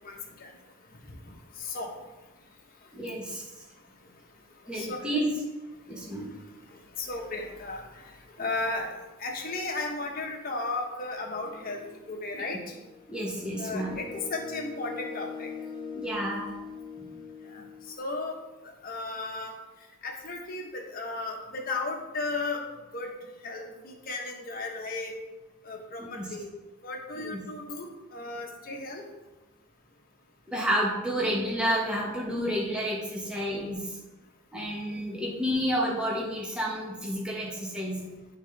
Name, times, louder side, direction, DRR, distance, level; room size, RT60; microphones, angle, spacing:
voice 1, 0.0-0.5 1.3-1.9 4.7-5.1 7.0-7.8 8.4-8.9 9.2-11.8 12.1-12.6 13.6-15.5 17.5-17.6 18.0-18.3 18.8-19.5 20.0-22.6 22.9-23.1 23.4-25.2 25.6-26.5 26.8-29.1, left 3 dB, 45° left, 1 dB, 1.1 m, -35 dB
voice 2, 2.9-3.4 4.7-5.4 5.9-6.3 13.1-14.0 15.9-16.5 17.0-17.1 23.7-23.8 26.0-26.3 27.2-27.4 30.5-34.0 34.5-38.0, equal, 5° right, -4 dB, 1.2 m, -30 dB
sound 1, 11.4-18.0, left 5 dB, 25° left, 0.5 m, -42 dB
11.5 x 3.8 x 3.3 m, 1.1 s
head